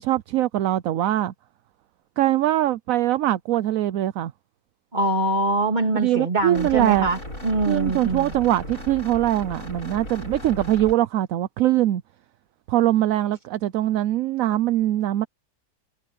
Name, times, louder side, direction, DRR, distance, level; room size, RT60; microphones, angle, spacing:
voice 1, 0.0-1.3 2.2-4.3 5.9-7.1 7.7-12.0 12.7-15.3, right 13 dB, 65° right, 0.9 m, -22 dB
voice 2, 4.9-8.3, right 2 dB, 25° right, 3.0 m, -24 dB
sound 1, 6.5-10.9, left 1 dB, 50° left, 8.4 m, -36 dB
omnidirectional pair, 1.8 m